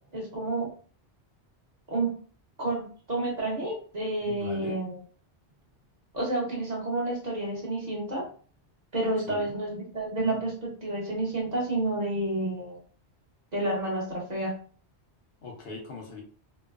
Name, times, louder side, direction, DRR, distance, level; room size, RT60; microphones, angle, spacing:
voice 1, 0.1-0.7 1.9-2.1 2.6-5.0 6.1-8.2 8.9-12.8 13.5-14.5, right 2 dB, 40° right, -4 dB, 0.9 m, -30 dB
voice 2, 4.2-4.8 9.3-9.5 15.4-16.2, left 3 dB, 60° left, 0 dB, 0.9 m, -41 dB
2.9 x 2.0 x 2.3 m, 0.42 s
omnidirectional pair, 1.1 m